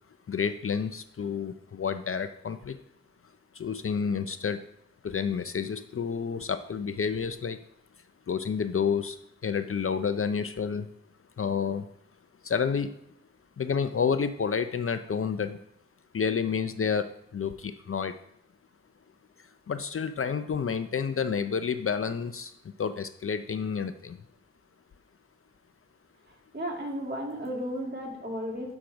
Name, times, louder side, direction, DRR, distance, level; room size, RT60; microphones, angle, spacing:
voice 1, 0.3-2.8 3.6-4.6 5.0-7.6 8.3-9.2 9.4-10.9 11.4-11.8 12.4-12.9 13.6-15.6 16.1-17.1 17.3-18.1 19.7-22.5 22.8-24.2, left 6 dB, 50° left, 10 dB, 0.5 m, -29 dB
voice 2, 26.5-28.8, equal, 40° right, -1 dB, 2.1 m, -34 dB
6.4 x 5.9 x 5.2 m, 0.73 s
wide cardioid pair, 80°, 29 cm